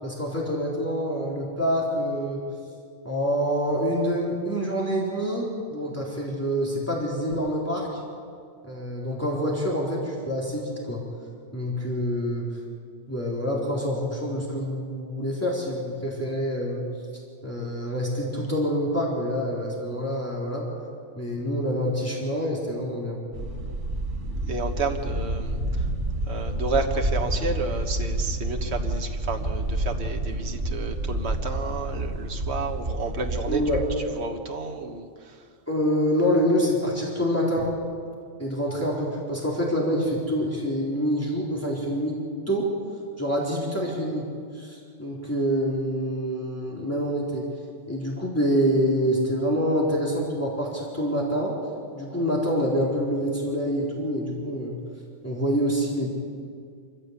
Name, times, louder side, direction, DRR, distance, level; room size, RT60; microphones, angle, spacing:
voice 1, 0.0-2.4 3.0-8.0 8.6-11.0 11.5-12.5 13.1-16.8 17.4-20.7 21.2-23.2 33.5-33.8 35.7-37.7 38.4-42.2 42.5-42.7 43.2-44.2 44.5-47.4 47.9-51.5 51.9-54.7 55.2-56.1, equal, 10° left, -4 dB, 4.1 m, -26 dB
sound 1, 23.3-34.0, right 1 dB, 90° right, 2.1 m, -29 dB
voice 2, 24.5-25.9 26.3-33.6 34.1-35.4 37.6-37.7, right 4 dB, 65° right, 4 dB, 1.6 m, -31 dB
26.0 x 15.5 x 8.3 m, 2.2 s
omnidirectional pair, 1.2 m